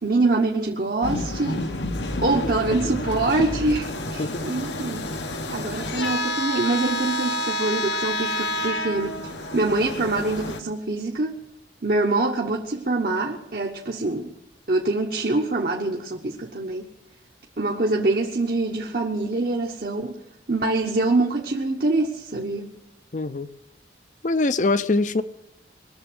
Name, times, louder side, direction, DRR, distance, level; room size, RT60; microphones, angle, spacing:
voice 1, 0.0-1.7 2.2-5.1 5.5-11.4 11.8-14.3 14.7-16.9 17.6-20.2 20.5-22.7, right 2 dB, 55° right, 1 dB, 1.1 m, -25 dB
sound 1, 1.0-10.6, left 1 dB, 80° left, 1.2 m, -29 dB
voice 2, 23.1-23.5 24.2-25.2, left 2 dB, 45° left, 13 dB, 0.6 m, -23 dB
21.0 x 7.1 x 7.8 m, 0.86 s
head